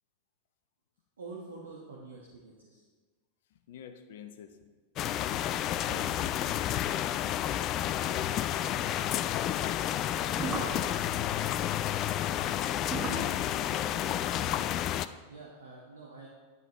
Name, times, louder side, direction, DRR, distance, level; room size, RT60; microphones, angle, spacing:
voice 1, 1.2-2.8 5.8-7.3 13.7-14.0 15.3-16.3, right 3 dB, 70° right, -3 dB, 1.4 m, -48 dB
voice 2, 3.5-4.6 13.5-14.9, left 8 dB, 55° left, 7 dB, 0.8 m, -48 dB
sound 1, 5.0-15.1, left 12 dB, 35° left, 0.3 m, -30 dB
sound 2, 8.3-9.4 10.0-14.5, right 3 dB, 15° right, 1.4 m, -41 dB
11.0 x 10.0 x 3.1 m, 1.4 s
figure-of-eight pair, 90°, 0 cm